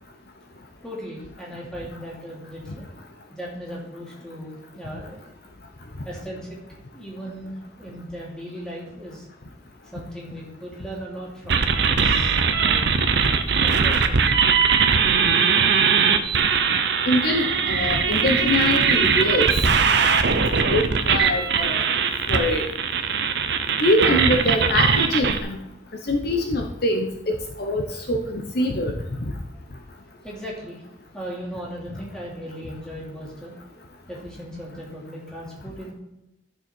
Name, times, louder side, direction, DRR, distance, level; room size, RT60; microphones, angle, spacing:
voice 1, 0.8-2.8 3.3-5.2 6.0-6.6 6.9-9.3 9.8-12.9 13.6-14.4 30.2-30.8 31.1-33.5 34.1-35.9, equal, 5° left, -4 dB, 2.7 m, -37 dB
sound 1, 11.5-25.4, right 6 dB, 55° right, 0.7 m, -20 dB
voice 2, 17.1-20.2 20.7-21.8 22.3-22.7 23.8-25.6 26.1-28.9, left 1 dB, 50° left, 3 dB, 0.9 m, -24 dB
12.5 x 6.6 x 4.5 m, 0.89 s
head